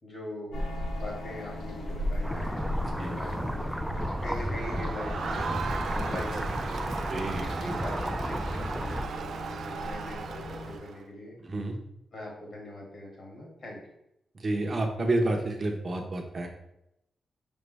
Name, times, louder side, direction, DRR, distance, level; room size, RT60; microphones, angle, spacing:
voice 1, 0.0-0.7 0.9-3.4 4.2-5.6 5.9-6.7 7.4-11.3 12.1-13.8, left 1 dB, 45° left, -2 dB, 2.4 m, -41 dB
sound 1, 0.5-10.8, left 1 dB, 85° left, 1.6 m, -37 dB
sound 2, 2.2-9.1, equal, 5° right, 0.3 m, -33 dB
voice 2, 2.8-3.2 7.1-7.4 11.4-11.8 14.4-16.5, right 2 dB, 35° right, 3 dB, 1.0 m, -29 dB
Crowd, 4.2-11.0, right 5 dB, 65° right, 0.5 m, -37 dB
5.4 x 5.4 x 3.4 m, 0.82 s
wide cardioid pair, 135°, 0 cm